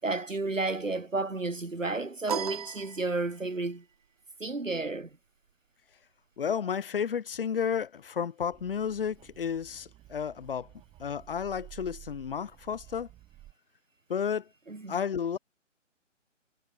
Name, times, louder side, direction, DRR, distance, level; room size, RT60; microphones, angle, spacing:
voice 1, 0.0-3.8 4.4-5.1 14.7-15.0, right 3 dB, 80° right, 7.4 m, -32 dB
sound 1, 2.3-3.6, right 8 dB, 30° right, 0.9 m, -36 dB
voice 2, 6.4-10.7 11.0-13.1 14.1-14.5 14.9-15.4, left 7 dB, 45° left, 2.9 m, -32 dB
sound 2, 8.5-13.5, right 15 dB, 15° right, 6.0 m, -53 dB
figure-of-eight pair, 145°, 38 cm